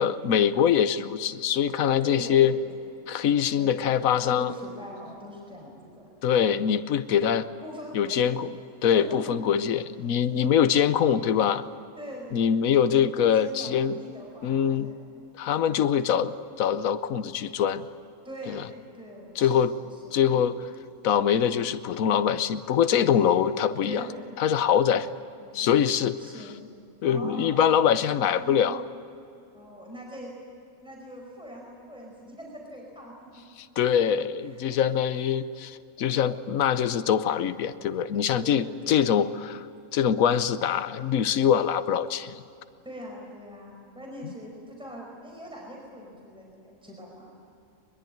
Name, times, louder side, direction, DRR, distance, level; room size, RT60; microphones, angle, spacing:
voice 1, 0.0-2.6 3.1-4.5 6.2-7.5 7.9-8.5 8.8-11.6 12.3-14.0 14.4-14.9 15.4-17.9 18.5-18.6 19.4-19.7 20.1-20.6 21.0-24.0 24.4-25.1 25.5-26.2 27.0-28.8 33.6-39.7 39.9-42.4 44.2-44.3, left 8 dB, 75° left, 12 dB, 1.3 m, -23 dB
voice 2, 1.9-2.8 3.2-6.1 7.6-8.4 8.9-9.4 10.4-10.5 12.0-12.4 13.0-15.1 18.2-19.7 19.9-20.4 23.8-24.4 25.4-25.7 26.2-26.6 27.0-27.6 28.1-28.7 29.5-30.3 30.8-33.4 34.5-34.7 38.4-39.1 42.8-47.3, equal, 5° right, -2 dB, 4.8 m, -42 dB
22.5 x 22.0 x 9.3 m, 2.6 s
omnidirectional pair, 1.5 m